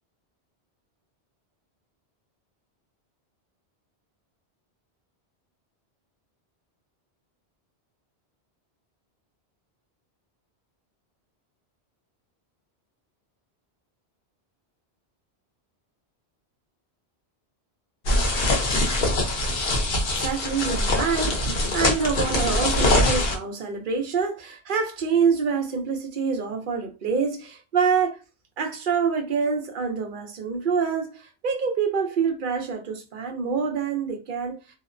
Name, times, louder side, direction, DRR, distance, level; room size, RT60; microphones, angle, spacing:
sound 1, 18.1-23.4, left 1 dB, 65° left, 0.9 m, -23 dB
voice 1, 20.2-28.2 28.6-34.6, right 5 dB, 55° right, 0.7 m, -26 dB
2.7 x 2.0 x 2.4 m
omnidirectional pair, 1.1 m